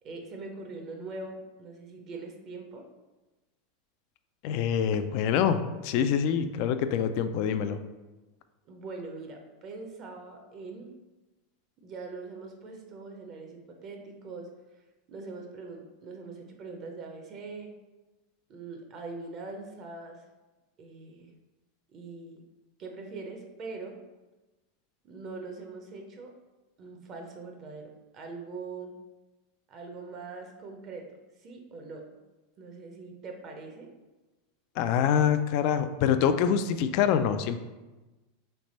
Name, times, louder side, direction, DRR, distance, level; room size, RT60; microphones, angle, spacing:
voice 1, 0.0-2.9 8.7-10.9 11.8-14.5 15.1-17.7 18.5-20.2 20.8-21.3 21.9-22.4 22.8-24.0 25.0-26.3 26.8-28.9 29.7-31.1 31.4-32.2 32.6-33.9, right 3 dB, 40° right, 3 dB, 0.6 m, -42 dB
voice 2, 4.4-7.8 34.8-37.6, left 8 dB, 55° left, 10 dB, 0.3 m, -25 dB
3.3 x 3.2 x 4.1 m, 1.1 s
supercardioid pair, 125°, 0 cm